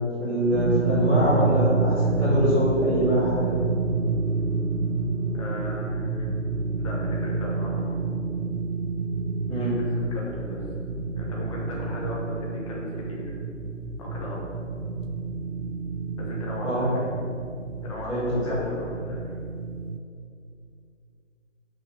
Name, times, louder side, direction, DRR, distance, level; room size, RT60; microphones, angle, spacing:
voice 1, 0.2-3.5 9.5-9.8 16.6-16.9 18.1-18.4, equal, ahead, -18 dB, 1.1 m, -24 dB
sound 1, 0.5-20.0, right 3 dB, 80° right, 0.7 m, -29 dB
voice 2, 5.3-6.2 6.8-8.0 9.5-9.8 10.1-10.6 11.1-13.4 14.0-14.4 16.2-17.0 17.8-19.3, left 2 dB, 25° left, -4 dB, 1.2 m, -37 dB
6.2 x 5.4 x 6.0 m, 2.4 s
figure-of-eight pair, 155°, 38 cm